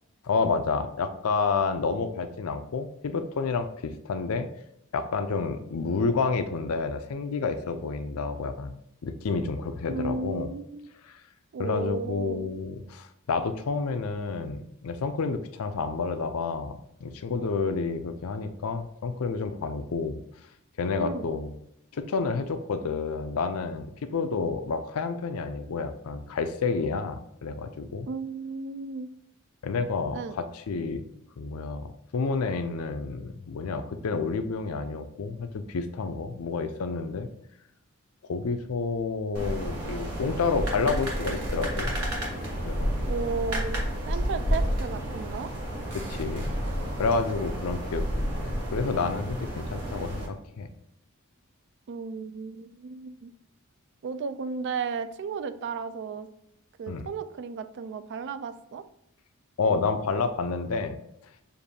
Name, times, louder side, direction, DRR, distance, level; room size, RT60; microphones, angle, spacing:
voice 1, 0.2-4.5 4.9-10.5 11.0-11.2 11.6-20.2 20.8-21.5 21.9-28.1 29.6-31.0 31.4-37.3 38.2-42.0 42.6-42.9 45.9-46.5 47.0-50.7 56.9-57.0 59.6-61.0, left 4 dB, 75° left, 8 dB, 0.5 m, -29 dB
voice 2, 9.9-10.9 11.5-12.5 21.0-21.3 28.1-29.1 30.1-30.3 43.1-43.8 44.1-45.5 51.9-53.3 54.0-56.3 56.8-58.8, right 5 dB, 55° right, 11 dB, 0.3 m, -34 dB
sound 1, 39.3-50.3, equal, 75° right, 1.3 m, -30 dB
6.6 x 2.6 x 2.7 m, 0.79 s
head